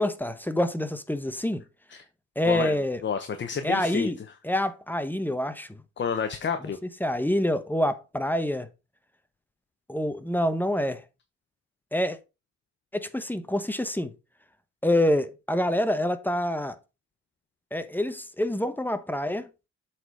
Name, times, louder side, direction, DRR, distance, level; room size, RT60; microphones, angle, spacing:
voice 1, 0.0-1.6 2.4-3.0 3.6-4.2 4.4-5.8 7.0-8.7 9.9-11.0 11.9-12.2 12.9-14.1 14.8-16.8 17.7-19.5, left 1 dB, 5° left, 0.9 m, -26 dB
voice 2, 2.4-4.1 6.0-6.8, left 6 dB, 40° left, 0.9 m, -30 dB
7.9 x 4.2 x 4.7 m
cardioid pair, 90°, 30 cm